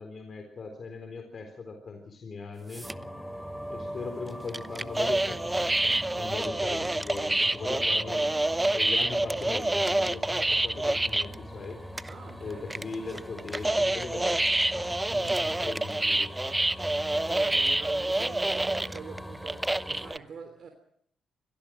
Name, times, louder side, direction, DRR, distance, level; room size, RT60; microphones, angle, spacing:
voice 1, 0.0-2.9 3.7-8.3 8.7-11.8 12.4-16.3, left 4 dB, 50° left, 4.0 m, -40 dB
sound 1, 2.7-3.0 4.5-11.3 11.7-11.8 12.0-12.3 12.7-20.2, right 2 dB, 15° right, 0.8 m, -27 dB
sound 2, 2.8-20.2, equal, 5° left, 3.5 m, -42 dB
voice 2, 12.1-12.7 17.2-20.7, right 5 dB, 55° right, 3.2 m, -44 dB
25.5 x 18.5 x 6.2 m
hypercardioid pair, 45°, 0 cm